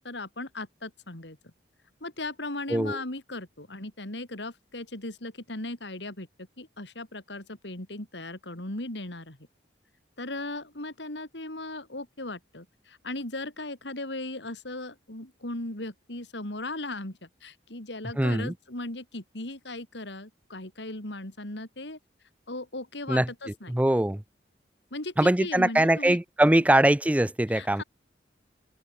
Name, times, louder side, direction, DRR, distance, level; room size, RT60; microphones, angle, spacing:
voice 1, 0.0-1.5 2.0-6.3 6.6-9.4 10.2-22.0 22.5-23.7 24.9-26.2 27.5-27.8, left 2 dB, 75° left, 4.1 m, -37 dB
voice 2, 18.2-18.5 23.1-23.3 23.7-24.2 25.2-27.8, right 1 dB, 10° right, 0.4 m, -22 dB
open air
head